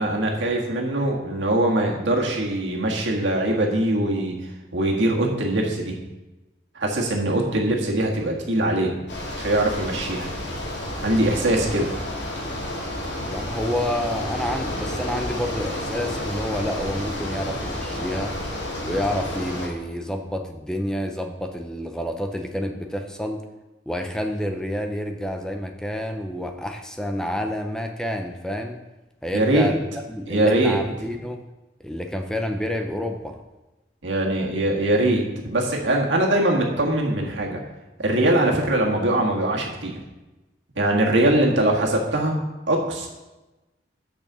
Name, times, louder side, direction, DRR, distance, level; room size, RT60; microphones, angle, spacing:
voice 1, 0.0-4.4 4.7-6.0 6.8-9.0 9.4-10.3 11.0-11.9 29.3-29.7 30.3-30.8 34.0-37.6 38.0-39.9 40.8-42.4 42.7-43.1, right 1 dB, 90° right, -1 dB, 1.8 m, -22 dB
Bicycle, 9.1-19.7, left 1 dB, 75° left, 2.4 m, -30 dB
voice 2, 13.2-18.3 18.8-23.4 23.9-28.8 29.2-29.8 30.1-31.4 31.8-33.4 41.3-41.4, equal, 5° left, 4 dB, 0.5 m, -29 dB
6.4 x 6.2 x 6.8 m, 1.1 s
head